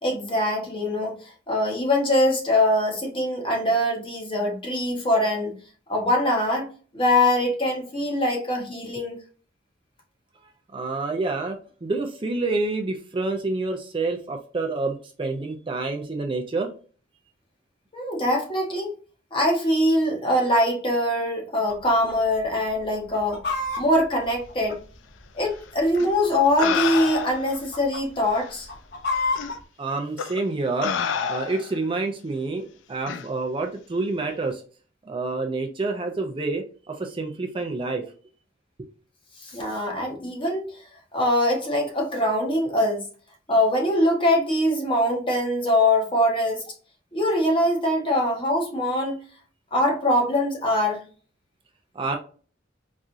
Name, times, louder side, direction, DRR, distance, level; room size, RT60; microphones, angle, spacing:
voice 1, 0.0-5.5 5.9-6.7 6.9-9.2 17.9-19.0 19.3-23.4 23.8-24.8 25.3-28.7 39.4-40.7 41.1-43.0 43.5-46.7 47.1-49.2 49.7-51.0, left 1 dB, 30° left, 1.1 m, -23 dB
voice 2, 10.7-16.7 29.8-34.6 35.1-38.0 51.9-52.2, right 3 dB, 30° right, 0.5 m, -28 dB
Chicken rooster, 21.7-22.2 22.4-22.5 22.9-25.2 25.9-26.7 27.0-27.3 27.5-28.0 28.5-29.6, left 3 dB, 60° left, 0.8 m, -29 dB
sound 1, 25.9-26.1 26.6-27.5 28.4-28.5 29.3-29.5 30.2-30.4 30.8-31.8 33.1-33.3, left 7 dB, 80° left, 0.4 m, -28 dB
4.2 x 2.4 x 2.5 m
head